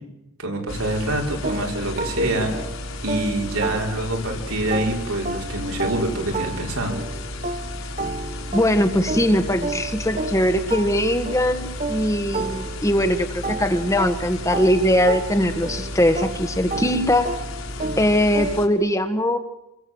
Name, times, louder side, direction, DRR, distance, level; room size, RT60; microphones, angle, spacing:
voice 1, 0.4-2.5 3.0-7.0, right 1 dB, 85° right, 1 dB, 5.6 m, -25 dB
sound 1, 0.7-18.7, left 1 dB, 65° left, 4.0 m, -33 dB
sound 2, 1.4-4.3 4.7-13.1 13.4-18.9, right 3 dB, 30° right, 1.1 m, -32 dB
voice 2, 8.5-17.3 18.0-19.4, equal, 15° left, 8 dB, 1.5 m, -21 dB
27.5 x 22.5 x 8.0 m, 0.87 s
head